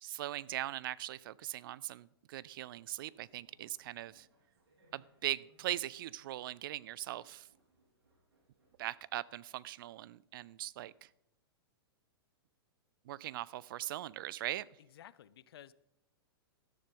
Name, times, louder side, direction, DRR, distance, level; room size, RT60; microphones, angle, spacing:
voice 1, 0.0-4.3 4.9-7.5 8.8-11.1 13.1-14.7, right 14 dB, 55° right, 22 dB, 0.4 m, -40 dB
sound 1, 2.9-9.0, right 1 dB, 85° right, 4.2 m, -72 dB
voice 2, 14.8-15.7, left 11 dB, 70° left, 18 dB, 0.6 m, -55 dB
12.5 x 10.5 x 3.8 m, 0.84 s
hypercardioid pair, 120°, 13 cm